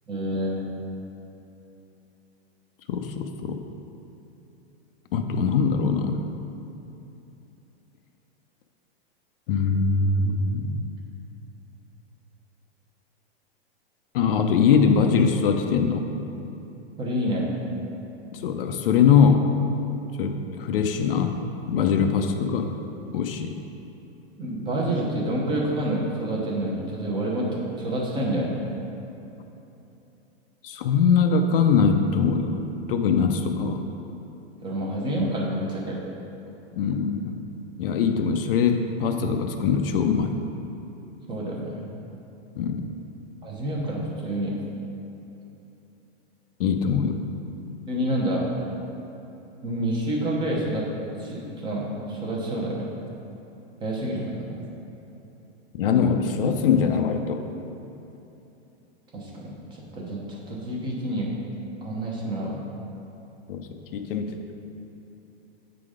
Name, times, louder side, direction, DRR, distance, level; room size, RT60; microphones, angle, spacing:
voice 1, 0.1-0.6 17.0-17.5 24.4-28.7 34.6-36.0 41.3-41.9 43.4-44.6 47.9-48.5 49.6-50.8 51.2-52.9 53.8-54.6 59.1-61.3 61.8-62.7, right 1 dB, 15° right, -3 dB, 0.8 m, -28 dB
voice 2, 2.9-3.6 5.1-6.2 9.5-10.8 14.1-16.1 18.3-19.5 20.2-21.4 21.7-22.7 23.1-23.5 30.6-32.6 32.9-33.8 36.8-37.3 37.8-40.4 42.6-42.8 46.6-47.2 55.7-57.4 63.5-64.4, left 6 dB, 60° left, 5 dB, 0.5 m, -22 dB
7.5 x 3.9 x 4.9 m, 3.0 s
hypercardioid pair, 155°, 33 cm